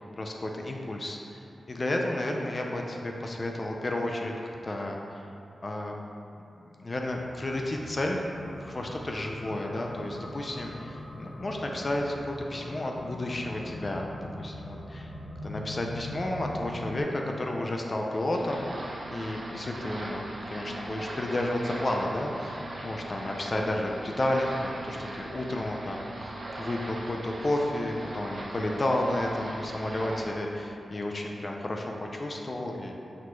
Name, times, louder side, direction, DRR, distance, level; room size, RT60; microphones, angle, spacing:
voice 1, 0.0-1.4 1.7-4.3 4.6-5.3 5.6-6.0 6.8-14.1 14.4-15.1 15.4-26.0 26.6-32.9, left 1 dB, 35° left, 1 dB, 0.3 m, -32 dB
sound 1, 7.0-17.0, left 1 dB, ahead, 0.9 m, -42 dB
sound 2, 18.3-30.2, right 1 dB, 60° right, 0.5 m, -40 dB
5.9 x 2.2 x 3.1 m, 2.7 s
wide cardioid pair, 130°, 0 cm